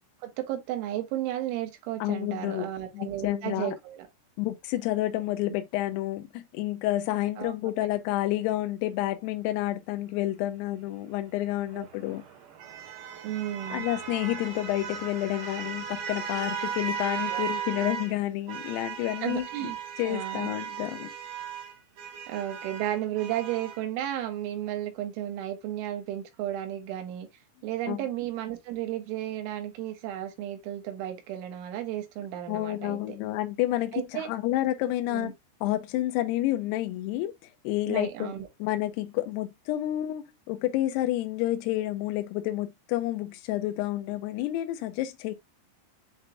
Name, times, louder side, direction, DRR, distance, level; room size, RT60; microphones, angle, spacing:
voice 1, 0.2-4.1 7.4-7.5 11.7-11.9 13.2-13.9 17.3-17.4 19.2-19.8 20.0-20.5 22.3-27.3 27.6-33.2 33.9-34.3 35.1-35.3 37.8-38.5, right 12 dB, 80° right, 3.4 m, -33 dB
voice 2, 2.0-2.7 2.9-3.7 4.4-12.2 13.7-19.7 20.0-21.1 27.9-28.0 32.5-35.3 35.6-37.4 37.6-38.3 38.6-45.3, left 15 dB, 80° left, 2.4 m, -29 dB
sound 1, 11.5-18.2 18.5-23.8, right 7 dB, 65° right, 2.6 m, -37 dB
7.9 x 3.0 x 2.3 m
omnidirectional pair, 5.6 m